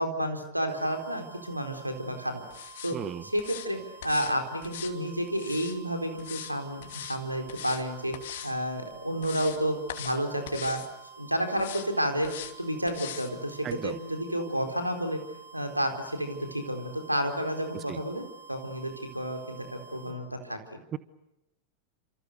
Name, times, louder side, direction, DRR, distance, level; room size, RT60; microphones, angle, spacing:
voice 1, 0.0-2.4 2.8-3.0 3.2-8.1 8.4-10.8 11.2-15.2 15.5-20.8, equal, 90° right, 6 dB, 4.2 m, -31 dB
sound 1, 0.7-20.2, right 7 dB, 90° left, 4.0 m, -50 dB
sound 2, 2.5-3.0 3.4-3.7 4.0-4.3 4.6-5.8 6.2-6.5 6.8-7.2 7.5-7.8 8.1-8.5 8.9-9.6 9.9-10.2 10.5-10.9 11.6-11.9 12.2-12.5 12.9-13.3 13.7-13.8, left 11 dB, 55° left, 2.8 m, -41 dB
voice 2, 2.9-3.2 13.6-14.0 17.9-18.0 20.9-21.0, right 10 dB, 30° right, 15 dB, 1.2 m, -35 dB
30.0 x 27.5 x 6.7 m, 0.87 s
figure-of-eight pair, 90°, 0 cm